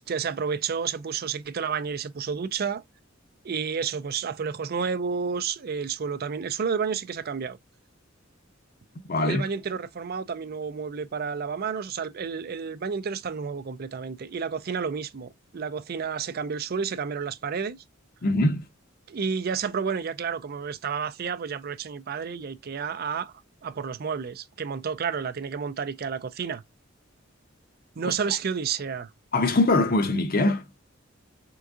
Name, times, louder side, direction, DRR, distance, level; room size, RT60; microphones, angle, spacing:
voice 1, 0.1-2.8 3.4-7.6 9.2-17.8 19.1-23.3 23.6-26.6 28.0-29.1, right 6 dB, 50° right, 0.5 m, -30 dB
voice 2, 9.1-9.4 18.2-18.6 29.3-30.6, left 2 dB, 50° left, 0.7 m, -22 dB
3.9 x 3.5 x 3.6 m
head